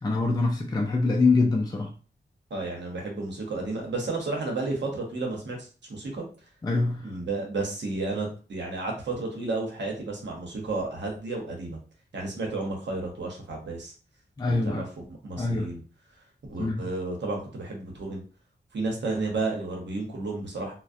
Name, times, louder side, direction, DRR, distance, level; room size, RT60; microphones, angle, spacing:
voice 1, 0.0-1.9 6.6-7.1 14.4-14.8 15.4-15.7 16.6-16.9, left 3 dB, 20° left, 0 dB, 0.3 m, -24 dB
voice 2, 2.5-6.2 7.0-11.8 12.1-13.9 14.5-15.8 16.5-18.2 18.7-20.7, right 3 dB, 75° right, 0 dB, 0.8 m, -32 dB
2.4 x 2.0 x 2.5 m, 0.39 s
wide cardioid pair, 105°, 19 cm